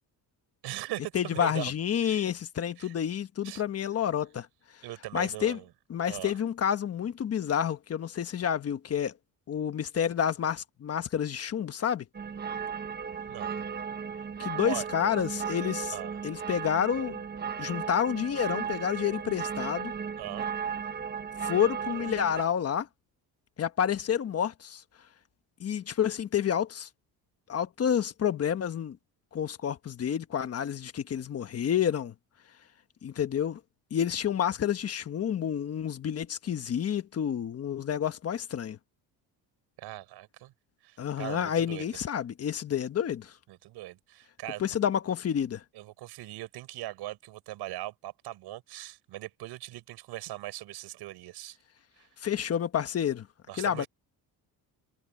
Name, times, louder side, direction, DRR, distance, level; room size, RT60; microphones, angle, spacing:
voice 1, 0.6-1.7 2.0-2.3 2.8-2.9 3.4-3.6 4.8-5.7 6.1-6.3 13.3-13.6 14.7-14.9 15.9-16.2 20.2-20.5 39.8-40.5 40.8-42.0 43.5-44.8 45.7-51.6 52.0-52.1 53.5-53.9, right 16 dB, 80° right, 5.1 m, -40 dB
voice 2, 1.1-4.5 5.1-5.6 5.9-9.1 9.5-12.0 14.4-15.9 16.2-17.2 17.6-19.9 21.4-22.9 23.6-24.8 25.6-26.9 27.5-29.0 29.3-32.1 33.0-33.6 33.9-38.8 41.0-43.3 44.6-45.6 52.2-53.3 53.6-53.8, left 9 dB, 40° left, 1.2 m, -29 dB
sound 1, 12.1-22.4, right 7 dB, 25° right, 1.1 m, -35 dB
cardioid pair, 140°, 39 cm